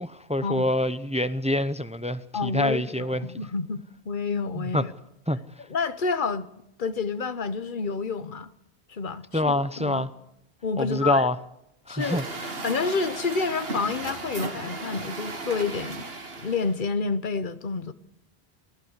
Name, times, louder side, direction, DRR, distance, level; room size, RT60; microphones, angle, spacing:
voice 1, 0.0-3.3 4.6-4.8 5.3-5.4 9.3-10.1 10.8-11.4 11.9-12.5, left 1 dB, 10° right, 0.6 m, -26 dB
voice 2, 2.3-4.9 5.7-6.5 6.8-8.5 8.9-9.5 9.8-10.0 10.6-11.3 11.9-12.2 12.6-16.0 16.4-17.9, left 4 dB, 50° left, 1.2 m, -29 dB
Truck, 12.0-16.8, right 3 dB, 65° right, 2.1 m, -35 dB
24.0 x 16.0 x 8.1 m
omnidirectional pair, 1.1 m